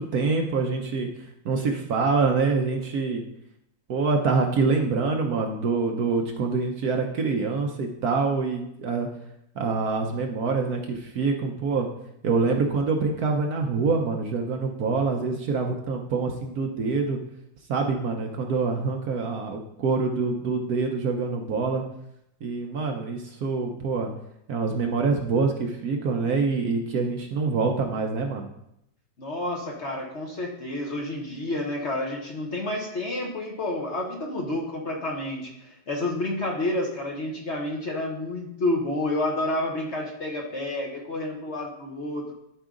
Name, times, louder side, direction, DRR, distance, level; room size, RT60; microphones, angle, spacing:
voice 1, 0.0-3.2 3.9-9.1 9.5-11.9 12.2-17.2 17.7-21.8 22.4-24.1 24.5-28.5, right 4 dB, 60° right, 3 dB, 1.1 m, -25 dB
voice 2, 29.2-42.3, left 1 dB, 40° left, 0 dB, 1.2 m, -29 dB
12.0 x 4.7 x 3.8 m, 0.78 s
omnidirectional pair, 2.0 m